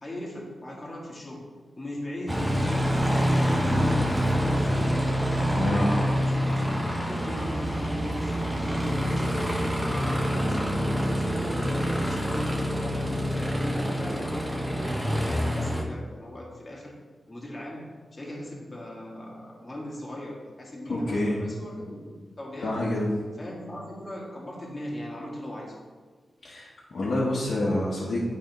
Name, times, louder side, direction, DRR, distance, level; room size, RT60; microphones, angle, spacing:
voice 1, 0.0-4.8 5.6-9.3 9.8-14.8 15.0-17.0 17.3-22.8 23.4-25.8, left 1 dB, 25° left, -4 dB, 1.5 m, -38 dB
Aircraft, 2.3-15.8, equal, 5° right, 0.9 m, -26 dB
voice 2, 5.5-5.9 20.9-21.4 22.6-23.1 26.4-28.2, left 1 dB, 60° left, -7 dB, 1.1 m, -27 dB
9.0 x 4.1 x 3.1 m, 1.5 s
cardioid pair, 75°, 0 cm